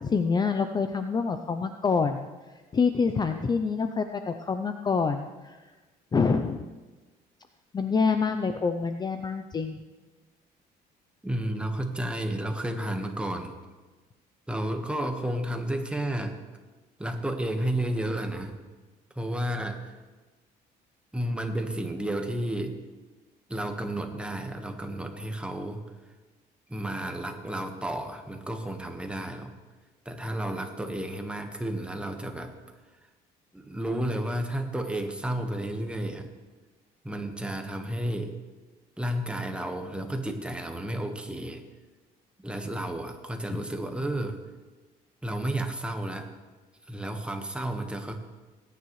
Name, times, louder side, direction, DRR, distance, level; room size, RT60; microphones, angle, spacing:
voice 1, 0.0-2.3 2.7-5.6 6.1-6.6 7.7-9.8 43.5-43.6, left 5 dB, 25° left, 8 dB, 0.5 m, -26 dB
voice 2, 11.2-13.5 14.5-16.4 17.0-18.6 19.1-19.8 21.1-22.8 23.5-25.8 26.7-29.5 30.0-32.5 33.5-36.3 37.0-38.3 39.0-41.6 42.4-44.4 45.2-46.3 46.9-48.1, right 1 dB, 5° right, 4 dB, 1.3 m, -32 dB
20.0 x 9.8 x 3.2 m, 1.2 s
cardioid pair, 110°, 17 cm